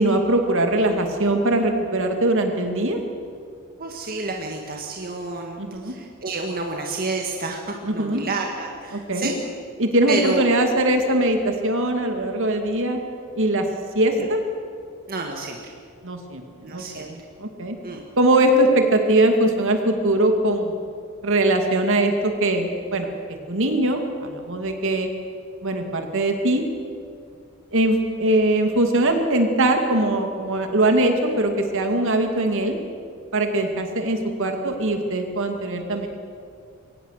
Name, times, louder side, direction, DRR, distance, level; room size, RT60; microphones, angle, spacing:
voice 1, 0.0-3.0 5.6-6.0 7.8-8.3 8.9-9.3 9.8-13.0 13.4-13.7 13.9-14.4 16.0-17.8 18.2-20.8 21.2-25.1 25.6-26.6 27.7-32.8 33.3-36.1, right 1 dB, 60° right, 4 dB, 2.4 m, -21 dB
voice 2, 3.8-9.3 10.1-10.7 14.2-14.3 15.1-15.7 16.6-17.1 17.8-18.1, right 3 dB, 45° right, 1 dB, 1.8 m, -29 dB
22.5 x 18.5 x 6.7 m, 2.3 s
head